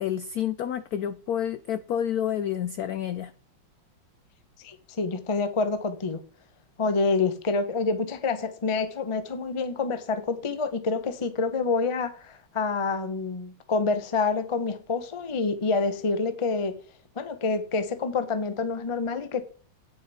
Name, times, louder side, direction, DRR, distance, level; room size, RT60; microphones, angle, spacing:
voice 1, 0.0-3.3, left 9 dB, 75° left, 0.8 m, -29 dB
voice 2, 4.6-6.2 6.8-16.7 17.2-19.4, left 4 dB, 40° left, 0.4 m, -27 dB
10.0 x 9.3 x 4.2 m
omnidirectional pair, 2.2 m